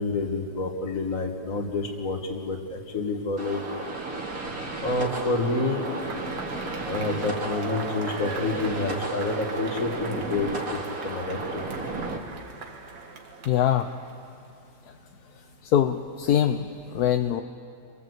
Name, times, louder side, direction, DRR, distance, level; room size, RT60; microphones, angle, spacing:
voice 1, 0.0-3.8 4.8-5.8 6.9-11.6, left 3 dB, 45° left, 3 dB, 2.3 m, -28 dB
sound 1, 3.4-12.2, right 2 dB, 50° right, 2.9 m, -34 dB
Cheering / Applause / Crowd, 5.8-14.5, right 4 dB, 75° right, 2.3 m, -39 dB
voice 2, 13.5-13.9 15.6-17.4, left 10 dB, 65° left, 7 dB, 1.2 m, -23 dB
28.5 x 23.0 x 8.1 m, 2.5 s
omnidirectional pair, 2.0 m